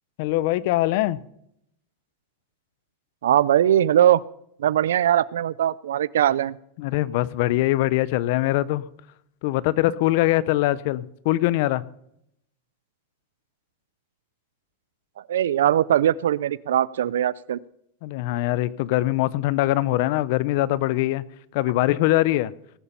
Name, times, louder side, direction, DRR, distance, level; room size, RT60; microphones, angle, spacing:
voice 1, 0.2-1.2 6.8-8.9 9.4-11.8 18.0-21.2 21.5-22.5, left 16 dB, 65° left, 19 dB, 0.7 m, -22 dB
voice 2, 3.2-4.2 4.6-6.6 15.3-17.6, right 11 dB, 90° right, 21 dB, 0.4 m, -20 dB
19.0 x 7.1 x 5.5 m, 0.74 s
supercardioid pair, 125°, 0 cm